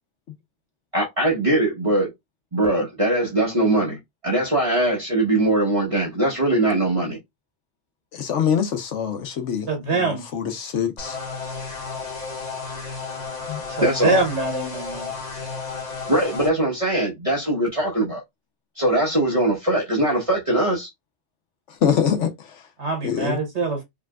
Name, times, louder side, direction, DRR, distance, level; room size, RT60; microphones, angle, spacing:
voice 1, 0.9-2.1 2.5-7.2 13.8-14.2 16.1-18.2 18.8-20.9, right 1 dB, 30° right, 1.2 m, -21 dB
voice 2, 8.1-11.2 13.5-13.6 21.7-22.6 23.0-23.4, left 8 dB, 85° left, 1.2 m, -24 dB
voice 3, 9.7-10.3 13.7-15.1 22.8-23.8, right 3 dB, 75° right, 1.7 m, -24 dB
sound 1, 11.0-16.5, left 4 dB, 35° left, 1.6 m, -33 dB
4.9 x 3.3 x 2.4 m
omnidirectional pair, 1.2 m